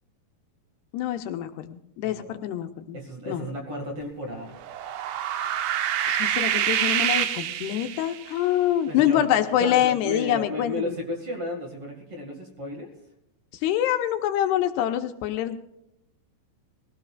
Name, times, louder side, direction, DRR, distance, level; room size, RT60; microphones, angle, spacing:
voice 1, 0.9-3.0 3.3-3.5 6.0-10.9 13.6-15.6, left 11 dB, 80° left, 7 dB, 2.7 m, -25 dB
voice 2, 2.0-2.4 2.9-4.6 8.9-9.3 9.6-12.9, left 1 dB, 40° right, 1 dB, 2.4 m, -33 dB
sound 1, 4.6-8.3, right 10 dB, 75° right, 2.8 m, -26 dB
20.5 x 17.5 x 2.4 m, 0.84 s
omnidirectional pair, 5.0 m